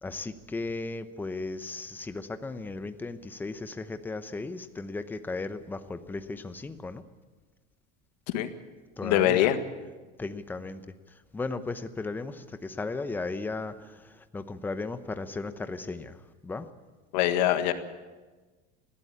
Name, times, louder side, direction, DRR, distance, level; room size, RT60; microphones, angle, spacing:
voice 1, 0.0-7.0 9.0-9.5 10.2-10.8 11.1-16.7, left 3 dB, 10° left, 10 dB, 0.9 m, -36 dB
voice 2, 9.0-9.6 17.1-17.7, left 12 dB, 90° left, 9 dB, 1.8 m, -23 dB
20.5 x 15.5 x 8.6 m, 1.3 s
cardioid pair, 150°, 21 cm